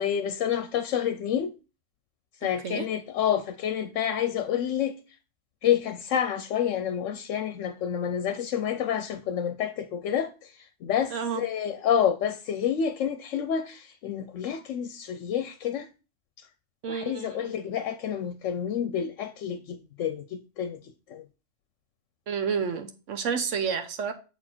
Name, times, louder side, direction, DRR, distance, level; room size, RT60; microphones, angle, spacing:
voice 1, 0.0-1.5 2.4-4.9 5.6-15.9 16.4-16.5 16.9-21.2, left 9 dB, 80° left, 0.9 m, -29 dB
voice 2, 11.1-11.4 16.8-17.5 22.3-24.1, right 6 dB, 75° right, 1.3 m, -30 dB
7.6 x 4.3 x 4.4 m
omnidirectional pair, 1.3 m